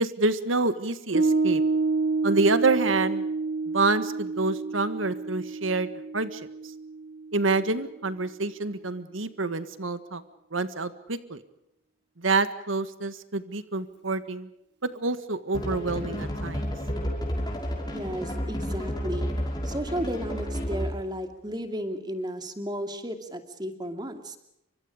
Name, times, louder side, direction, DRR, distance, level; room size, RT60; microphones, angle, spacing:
voice 1, 0.0-1.6 2.2-3.3 3.7-6.7 7.3-10.2 10.5-11.4 12.2-14.5 14.9-16.7, right 3 dB, 90° right, 12 dB, 1.6 m, -27 dB
Piano, 1.1-7.9, right 3 dB, 60° right, 1.5 m, -28 dB
sound 1, 15.5-21.1, equal, 20° left, 5.7 m, -31 dB
voice 2, 17.8-19.3 19.6-24.4, right 1 dB, 20° right, 7 dB, 2.6 m, -33 dB
29.5 x 25.0 x 5.1 m, 0.82 s
head